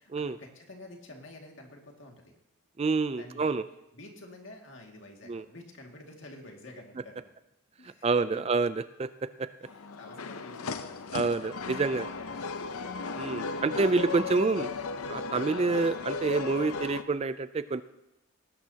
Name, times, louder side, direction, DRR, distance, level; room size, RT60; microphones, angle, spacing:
voice 1, 0.0-2.4 3.1-3.6 3.9-7.3 7.8-8.5 9.6-11.3 11.8-12.5 13.4-13.8, left 1 dB, 55° left, 1 dB, 2.1 m, -49 dB
voice 2, 2.8-3.6 5.3-5.4 8.0-8.7 9.0-9.1 9.4-9.5 11.1-12.1 13.1-14.7 15.1-17.8, right 4 dB, 30° right, 13 dB, 0.3 m, -27 dB
sound 1, 9.6-17.0, left 4 dB, 85° left, 0.7 m, -36 dB
19.5 x 12.0 x 2.8 m, 0.91 s
head